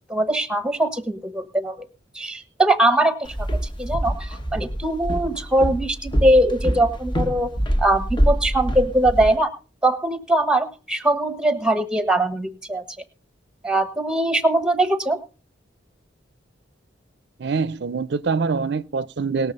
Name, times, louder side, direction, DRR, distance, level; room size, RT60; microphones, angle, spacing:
voice 1, 0.1-1.9 2.1-3.5 3.8-7.5 7.8-9.5 9.8-12.8 13.6-15.2, right 1 dB, 5° right, 1.2 m, -21 dB
Walk footsteps, 3.3-9.4, equal, 25° left, 1.2 m, -25 dB
voice 2, 17.4-19.5, right 4 dB, 65° right, 0.5 m, -24 dB
19.0 x 6.9 x 5.4 m
head